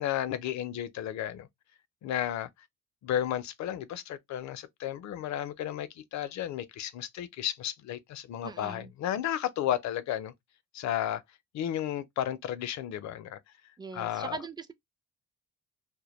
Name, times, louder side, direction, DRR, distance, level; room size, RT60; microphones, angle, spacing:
voice 1, 0.0-1.5 2.0-2.5 3.0-10.3 10.7-11.2 11.5-13.4 13.9-14.4, left 11 dB, 65° left, 0.5 m, -33 dB
voice 2, 8.4-8.9 13.8-14.7, right 4 dB, 15° right, 0.3 m, -40 dB
2.2 x 2.1 x 2.9 m
cardioid pair, 90°, 30 cm